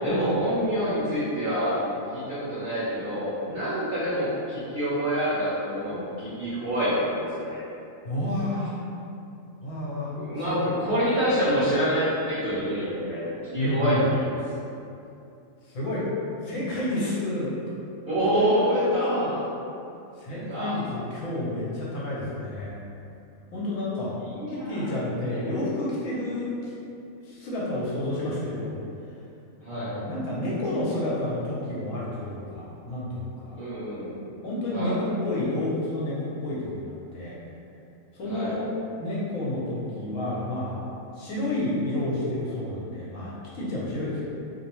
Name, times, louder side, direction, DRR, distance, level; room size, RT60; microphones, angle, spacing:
voice 1, 0.0-1.8 2.1-7.6 10.1-14.3 18.1-19.3 20.3-20.7 24.2-24.8 25.3-25.4 29.6-29.9 33.5-34.1 34.7-35.0 38.3-38.5, equal, 40° right, -13 dB, 0.9 m, -27 dB
voice 2, 8.0-8.7 9.6-10.1 10.4-10.7 13.6-14.0 15.6-16.1 16.4-17.5 18.3-19.3 20.2-22.7 23.5-24.2 24.5-26.7 27.2-28.8 29.7-33.5 34.4-37.4 38.1-38.6 39.0-40.8 41.2-44.3, left 1 dB, 70° left, -7 dB, 1.0 m, -30 dB
2.6 x 2.0 x 2.9 m, 2.7 s
omnidirectional pair, 1.4 m